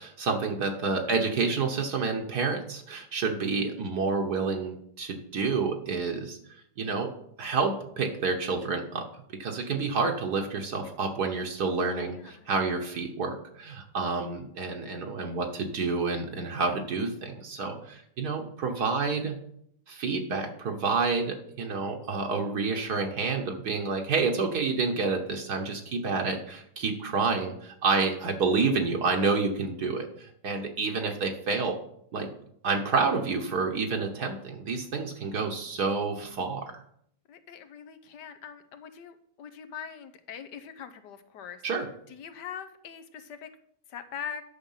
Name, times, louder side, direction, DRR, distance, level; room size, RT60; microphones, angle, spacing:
voice 1, 0.0-6.4 6.8-7.1 7.4-19.4 19.9-31.8 32.1-32.3 32.6-36.7 41.6-41.9, right 4 dB, 70° right, 2 dB, 1.6 m, -29 dB
voice 2, 12.0-12.5 30.8-31.0 37.3-41.6 42.1-43.5 43.9-44.4, left 7 dB, 80° left, 10 dB, 1.5 m, -42 dB
10.5 x 6.5 x 5.6 m, 0.69 s
omnidirectional pair, 1.8 m